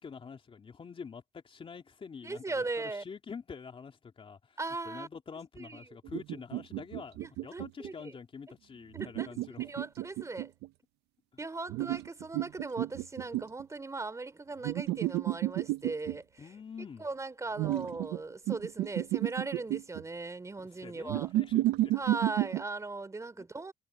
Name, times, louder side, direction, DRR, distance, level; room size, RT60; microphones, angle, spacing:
voice 1, 0.0-4.6 4.8-9.6 16.4-17.0 20.8-21.9 23.4-23.5, left 6 dB, 30° left, 3.2 m, -46 dB
voice 2, 2.2-3.0 4.6-5.1 5.6-5.9 7.2-8.2 8.5-8.6 8.9-9.3 9.6-10.5 11.4-16.5 17.0-21.3 21.9-23.7, right 3 dB, 20° right, 3.1 m, -39 dB
sound 1, 6.0-7.9 9.0-10.7 11.7-13.6 14.6-16.2 17.6-18.2 18.5-20.0 21.1-22.6, right 16 dB, 85° right, 0.7 m, -31 dB
cardioid pair, 110°, 17 cm